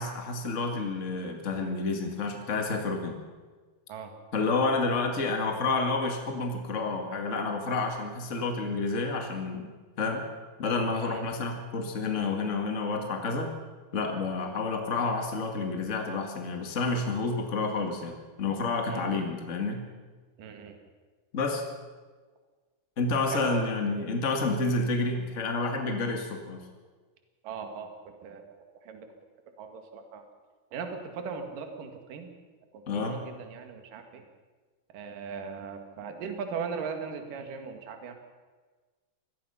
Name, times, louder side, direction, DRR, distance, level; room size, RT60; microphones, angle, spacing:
voice 1, 0.0-3.2 4.3-9.7 10.0-10.3 10.6-13.5 13.9-19.8 21.3-21.6 23.0-26.7 32.9-33.2, left 3 dB, 45° left, 3 dB, 0.9 m, -29 dB
voice 2, 20.4-20.8 23.3-23.7 27.4-29.1 29.6-30.2 30.7-32.3 33.1-34.2 34.9-38.1, right 5 dB, 60° right, 5 dB, 3.3 m, -38 dB
25.0 x 18.5 x 5.7 m, 1.4 s
omnidirectional pair, 4.8 m